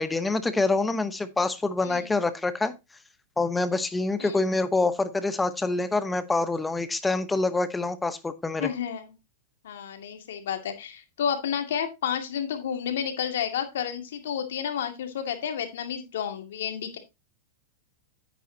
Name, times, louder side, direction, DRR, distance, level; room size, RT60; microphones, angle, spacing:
voice 1, 0.0-2.7 3.4-8.7, left 3 dB, 10° left, 12 dB, 1.0 m, -26 dB
voice 2, 8.6-9.1 9.6-17.0, left 8 dB, 80° left, 6 dB, 2.2 m, -31 dB
9.7 x 9.1 x 2.8 m, 0.23 s
hypercardioid pair, 130°, 0 cm